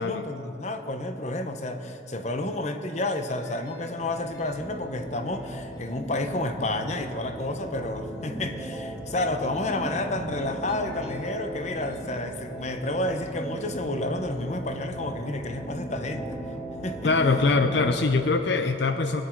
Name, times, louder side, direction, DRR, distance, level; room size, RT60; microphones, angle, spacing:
voice 1, 0.0-16.4 16.8-17.1, left 2 dB, 35° left, 7 dB, 0.8 m, -30 dB
sound 1, 3.3-18.0, right 1 dB, 20° left, 2.3 m, -38 dB
voice 2, 17.0-19.2, left 3 dB, 65° left, 7 dB, 0.5 m, -23 dB
22.5 x 9.9 x 4.5 m, 3.0 s
head